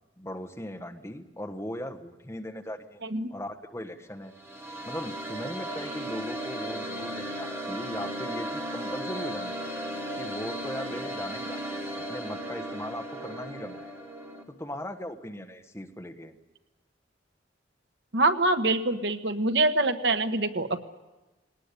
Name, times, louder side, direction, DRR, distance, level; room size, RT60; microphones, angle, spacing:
voice 1, 0.2-3.0 3.3-4.3 4.8-9.8 10.2-11.8 12.1-13.9 14.5-16.3, left 1 dB, 15° left, 6 dB, 1.3 m, -38 dB
voice 2, 3.0-3.3 18.1-20.8, right 2 dB, 65° right, 8 dB, 1.2 m, -25 dB
sound 1, 4.2-14.4, equal, 15° right, 2.9 m, -36 dB
21.0 x 19.0 x 9.8 m, 1.1 s
head